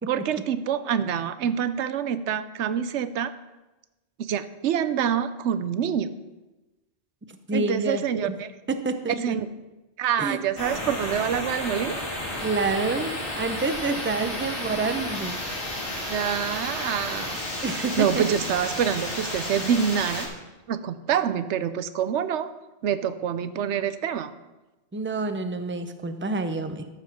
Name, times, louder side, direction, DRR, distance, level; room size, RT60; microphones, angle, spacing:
voice 1, 0.1-3.3 4.2-6.1 7.5-8.5 9.2-9.5 10.0-12.0 16.1-17.4 18.0-20.3 20.7-22.5 22.8-24.3, right 8 dB, 80° right, 13 dB, 0.9 m, -26 dB
voice 2, 7.5-8.3 8.7-9.4 10.2-10.4 10.8-10.9 12.4-15.4 17.6-18.3 24.9-26.9, right 3 dB, 20° right, 9 dB, 0.4 m, -28 dB
sound 1, 10.6-20.3, left 1 dB, 50° left, 2.3 m, -32 dB
13.5 x 4.8 x 5.8 m, 1.1 s
omnidirectional pair, 1.2 m